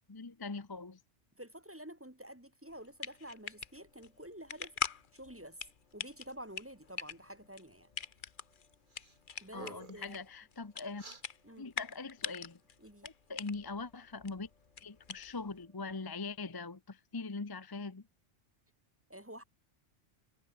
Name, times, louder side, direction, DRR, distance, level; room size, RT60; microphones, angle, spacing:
voice 1, 0.1-1.0 9.5-11.0 11.6-12.6 13.0-14.5 14.8-18.0, left 3 dB, 20° left, 0.8 m, -42 dB
voice 2, 1.4-4.8 5.1-5.6 5.9-7.9 9.4-10.2 11.4-11.7 12.8-13.1 19.1-19.4, right 1 dB, 10° right, 1.8 m, -49 dB
sound 1, 2.7-15.6, left 7 dB, 45° left, 1.0 m, -44 dB
sound 2, 3.0-16.4, left 2 dB, 75° left, 6.9 m, -74 dB
sound 3, 8.9-9.2 9.5-10.1 11.0-11.2, right 3 dB, 40° right, 2.2 m, -50 dB
omnidirectional pair, 1.3 m